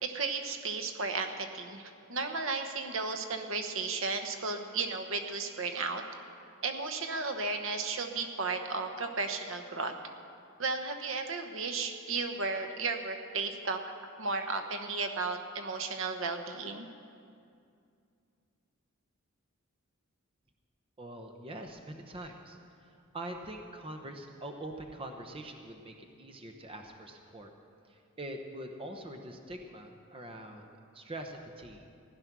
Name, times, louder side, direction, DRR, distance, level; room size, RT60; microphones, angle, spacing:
voice 1, 0.0-1.8 2.1-6.0 6.6-9.9 10.6-13.8 14.2-16.9, right 4 dB, 65° right, 6 dB, 1.0 m, -34 dB
voice 2, 21.0-27.5 27.9-31.9, right 1 dB, 25° right, 4 dB, 0.9 m, -44 dB
16.0 x 10.5 x 6.1 m, 2.4 s
head